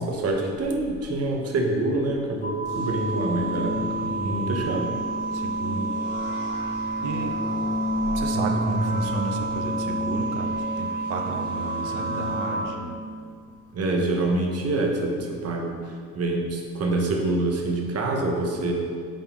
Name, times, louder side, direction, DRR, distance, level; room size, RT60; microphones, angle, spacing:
voice 1, 0.0-3.9 4.2-5.0 13.7-18.7, right 2 dB, 55° right, 1 dB, 1.0 m, -26 dB
sound 1, 2.4-12.6, right 5 dB, 30° left, 0.9 m, -31 dB
sound 2, 2.6-12.6, left 2 dB, 85° left, 1.5 m, -31 dB
voice 2, 4.0-4.6 5.4-5.9 7.0-7.3 8.1-13.0, right 3 dB, 90° right, 4 dB, 0.7 m, -32 dB
7.6 x 3.7 x 3.6 m, 2.1 s
cardioid pair, 90°, 30 cm